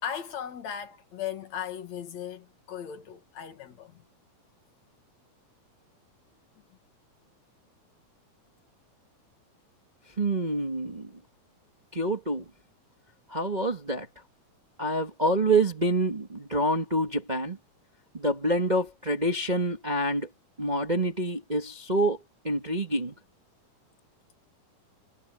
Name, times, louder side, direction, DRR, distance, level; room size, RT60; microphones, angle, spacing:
voice 1, 0.0-4.0 6.6-6.7, left 9 dB, 60° left, 2.9 m, -37 dB
voice 2, 10.2-11.1 11.9-12.5 13.3-14.1 14.8-17.6 18.1-20.3 20.6-22.2 22.4-23.1, right 1 dB, 25° right, 0.9 m, -27 dB
omnidirectional pair, 3.7 m